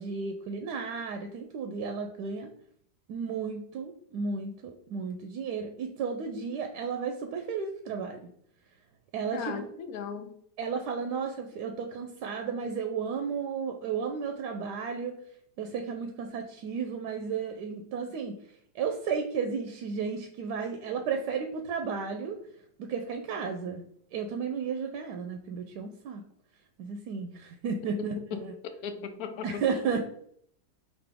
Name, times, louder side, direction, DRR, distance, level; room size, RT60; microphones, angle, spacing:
voice 1, 0.0-2.5 3.1-8.3 9.1-9.6 10.6-15.2 15.6-18.4 18.7-22.4 22.8-23.8 24.1-26.2 26.8-28.5 29.4-30.1, right 5 dB, 85° right, 5 dB, 1.2 m, -33 dB
voice 2, 9.3-10.3 28.8-29.6, left 6 dB, 70° left, 7 dB, 1.1 m, -37 dB
5.1 x 3.0 x 3.4 m, 0.66 s
omnidirectional pair, 1.8 m